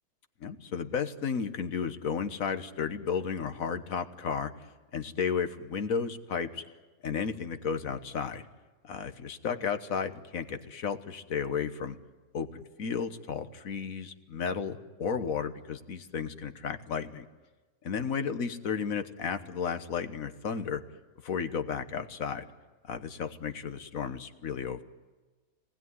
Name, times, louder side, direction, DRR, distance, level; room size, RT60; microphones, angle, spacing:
voice 1, 0.4-4.5 4.9-6.6 7.0-8.4 8.8-12.0 12.3-17.2 17.8-20.8 21.2-22.5 22.9-24.8, left 6 dB, 55° left, 9 dB, 1.6 m, -33 dB
27.0 x 19.5 x 9.6 m, 1.3 s
omnidirectional pair, 1.8 m